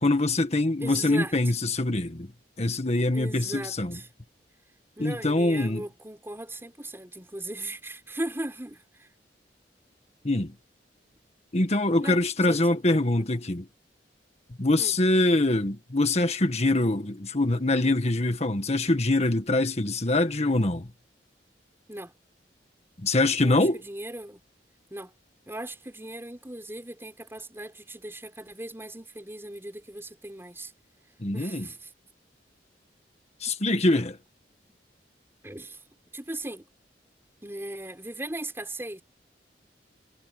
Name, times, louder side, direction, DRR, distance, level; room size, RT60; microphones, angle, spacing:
voice 1, 0.0-2.3 2.6-4.0 5.0-5.8 10.2-10.5 11.5-13.7 14.6-20.9 23.0-23.8 31.2-31.7 33.4-34.2, left 2 dB, 40° left, 1.6 m, -24 dB
voice 2, 0.8-1.3 3.1-4.1 5.0-9.1 12.0-13.4 14.8-15.0 21.9-22.1 23.4-24.4 24.9-25.1 25.5-30.7 31.3-31.9 33.5-33.6 35.4-35.8 36.1-36.7 37.4-39.0, right 1 dB, 15° right, 4.5 m, -38 dB
head